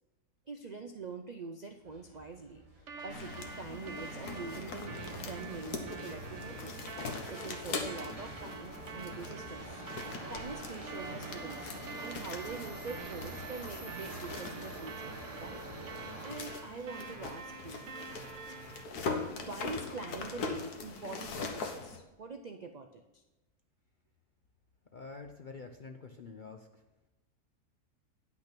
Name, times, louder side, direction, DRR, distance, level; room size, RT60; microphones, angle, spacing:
voice 1, 0.5-6.9 7.3-9.8 10.3-15.1 15.4-15.6 16.2-17.9 19.3-23.2, right 4 dB, 80° right, 5 dB, 0.3 m, -44 dB
Subway metro underground, 1.8-16.3, right 2 dB, 25° right, 1.4 m, -47 dB
sound 1, 2.9-18.8, right 5 dB, 55° right, 1.2 m, -47 dB
sound 2, 3.1-22.0, left 4 dB, 75° left, 1.7 m, -42 dB
voice 2, 24.9-26.8, left 4 dB, 55° left, 5 dB, 0.5 m, -47 dB
10.5 x 6.1 x 6.0 m, 1.0 s
omnidirectional pair, 1.7 m